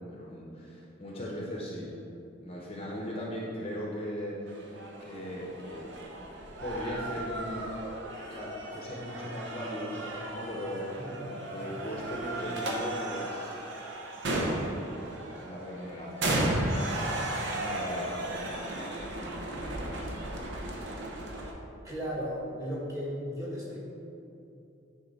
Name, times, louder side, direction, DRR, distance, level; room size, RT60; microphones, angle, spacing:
voice 1, 0.1-1.9 2.4-4.7 5.0-5.9 6.6-7.7 8.3-10.9 11.5-13.6 14.3-14.8 15.4-16.5 17.2-20.2, equal, 30° left, -3 dB, 0.8 m, -39 dB
sound 1, 4.5-21.5, right 1 dB, 60° right, 0.9 m, -35 dB
voice 2, 11.0-11.5 21.8-23.8, equal, 15° right, -6 dB, 1.6 m, -36 dB
9.4 x 4.1 x 4.1 m, 2.8 s
head